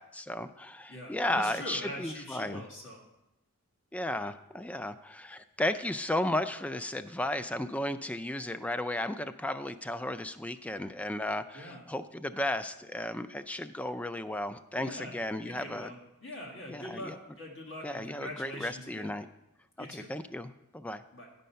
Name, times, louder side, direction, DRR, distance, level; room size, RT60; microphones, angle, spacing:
voice 1, 0.0-2.7 3.9-15.9 16.7-17.2 17.8-19.3 19.9-21.0, left 1 dB, 5° left, 11 dB, 0.3 m, -34 dB
voice 2, 0.9-3.0 11.5-11.8 14.8-15.1 15.5-19.1 19.8-20.1 21.1-21.3, left 1 dB, 60° left, -1 dB, 1.6 m, -43 dB
10.0 x 5.3 x 5.6 m, 0.93 s
head